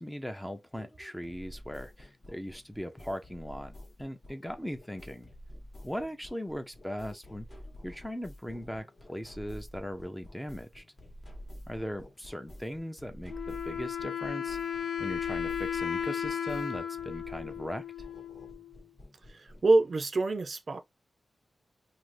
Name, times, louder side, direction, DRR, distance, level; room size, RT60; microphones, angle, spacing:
voice 1, 0.0-5.3 5.8-7.5 7.8-10.8 11.7-14.6 15.0-17.8, equal, 5° left, 0.5 m, -39 dB
sound 1, 0.7-19.7, equal, 40° left, 0.9 m, -49 dB
Wind instrument woodwind instrument, 13.3-18.8, left 8 dB, 75° left, 0.3 m, -35 dB
voice 2, 19.3-20.8, right 3 dB, 50° right, 0.4 m, -26 dB
2.7 x 2.5 x 3.2 m
wide cardioid pair, 105°, 0 cm